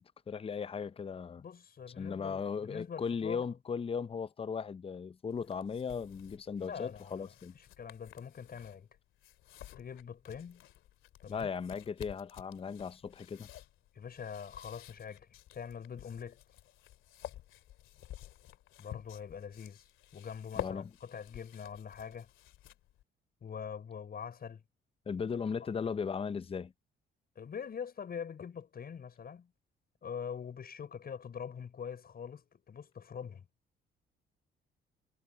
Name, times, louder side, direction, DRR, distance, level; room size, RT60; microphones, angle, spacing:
voice 1, 0.3-1.4 2.0-7.5 11.3-13.5 20.6-20.9 25.1-26.7, left 6 dB, 30° left, 0.6 m, -37 dB
voice 2, 1.4-3.4 6.6-8.9 9.8-10.6 11.2-11.5 13.9-16.4 18.8-19.8 20.1-22.3 23.4-24.6 25.6-25.7 27.3-29.5 30.0-33.4, left 7 dB, 50° left, 6.3 m, -44 dB
sound 1, 5.3-23.0, left 13 dB, 90° left, 2.3 m, -51 dB
cardioid pair, 90°, 20 cm